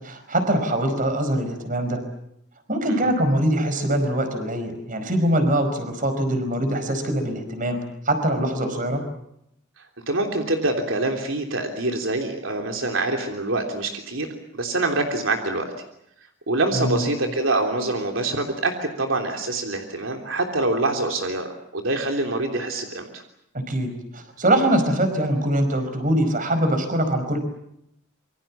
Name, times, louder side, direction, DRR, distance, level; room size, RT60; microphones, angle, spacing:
voice 1, 0.0-2.0 2.7-9.0 16.7-17.0 23.5-27.4, right 1 dB, 40° right, 8 dB, 4.9 m, -23 dB
voice 2, 10.1-14.3 14.5-15.7 16.5-23.2, right 2 dB, 80° right, 3 dB, 3.3 m, -25 dB
27.0 x 24.0 x 7.3 m, 0.77 s
head